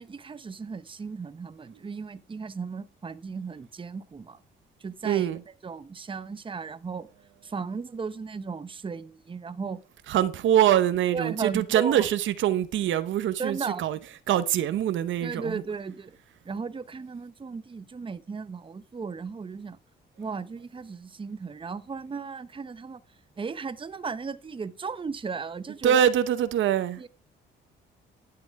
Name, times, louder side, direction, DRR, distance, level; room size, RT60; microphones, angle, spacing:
voice 1, 0.0-4.4 4.8-7.1 7.4-9.8 11.1-12.1 13.4-13.8 15.2-16.2 16.4-19.8 20.2-23.0 23.4-26.0 27.0-27.1, right 5 dB, 25° right, 0.8 m, -35 dB
voice 2, 5.0-5.4 10.1-14.0 14.3-15.6 25.8-27.0, right 10 dB, 75° right, 0.8 m, -24 dB
11.5 x 7.9 x 4.6 m
cardioid pair, 90°, 20 cm